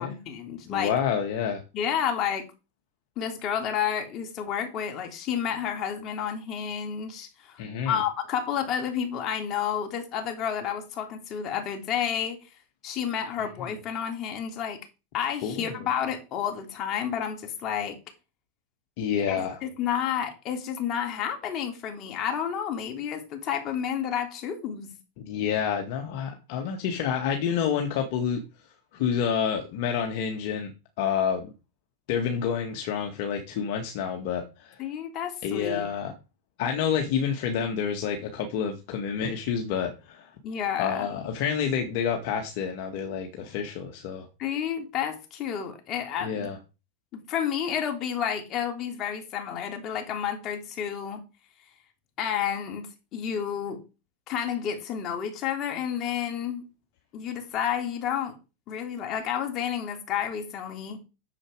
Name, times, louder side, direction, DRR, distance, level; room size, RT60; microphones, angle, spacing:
voice 1, 0.0-0.9 1.7-2.5 3.2-7.6 7.8-12.4 12.8-14.8 15.1-18.0 19.3-24.9 34.8-35.9 40.4-41.1 44.4-46.5 47.1-51.2 52.2-53.8 54.3-56.7 57.1-58.3 58.7-61.0, left 8 dB, 40° left, 3.4 m, -30 dB
voice 2, 0.7-1.6 7.6-8.0 15.4-15.9 19.0-19.6 25.2-28.4 28.9-30.7 31.0-31.5 32.1-34.8 35.4-36.1 36.6-40.3 40.8-44.3 46.2-46.6, left 7 dB, 55° left, 2.0 m, -28 dB
9.9 x 7.5 x 4.8 m
hypercardioid pair, 110°, 0 cm